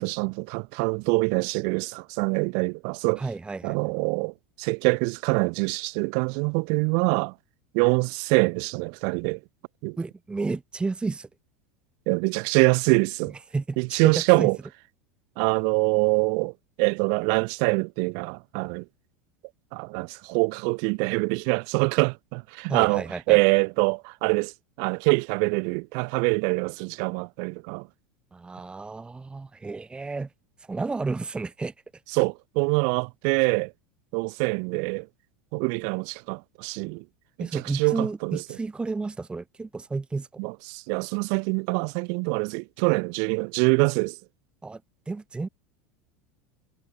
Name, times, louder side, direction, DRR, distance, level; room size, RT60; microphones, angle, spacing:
voice 1, 0.0-3.2 3.6-7.3 7.7-9.4 9.8-10.0 12.1-13.3 13.8-14.6 15.4-18.8 19.7-24.5 24.8-27.9 32.1-33.7 34.1-35.1 35.5-37.0 37.4-38.4 40.4-44.2, right 40 dB or more, 55° right, 0.4 m, -25 dB
voice 2, 3.2-3.9 10.0-11.3 13.5-14.5 22.7-23.4 28.3-30.3 30.6-31.7 37.4-40.4 44.6-44.8 45.1-45.5, right 3 dB, 10° right, 0.6 m, -32 dB
hypercardioid pair, 80°, 8 cm